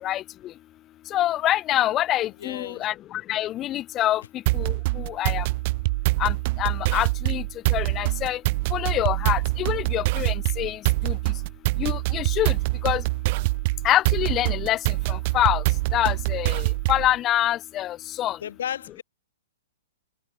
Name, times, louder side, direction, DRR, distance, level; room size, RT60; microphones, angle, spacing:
voice 1, 1.1-5.5 6.2-7.4 7.7-8.4 8.7-11.2 11.8-12.6 12.8-13.0 13.8-15.6 15.9-18.4, left 13 dB, 20° left, 4.2 m, -26 dB
voice 2, 2.4-2.9 18.4-19.0, left 9 dB, 65° left, 5.8 m, -33 dB
sound 1, 4.5-17.1, right 23 dB, 35° right, 1.2 m, -25 dB
hypercardioid pair, 160°, 0 cm